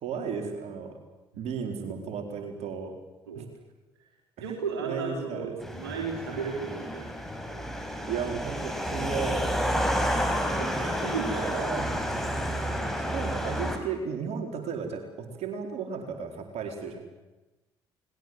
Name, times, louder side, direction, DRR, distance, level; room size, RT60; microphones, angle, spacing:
voice 1, 0.0-1.0 1.4-2.9 3.3-3.4 4.4-4.5 4.8-5.6 8.1-9.9 11.3-11.9 13.0-17.0, right 6 dB, 60° right, 4 dB, 4.3 m, -34 dB
voice 2, 4.4-7.1 10.5-11.7, right 5 dB, 80° right, 0 dB, 3.7 m, -35 dB
sound 1, 5.6-13.8, equal, ahead, 5.3 m, -30 dB
29.0 x 21.0 x 7.8 m, 1.1 s
figure-of-eight pair, 45°, 13 cm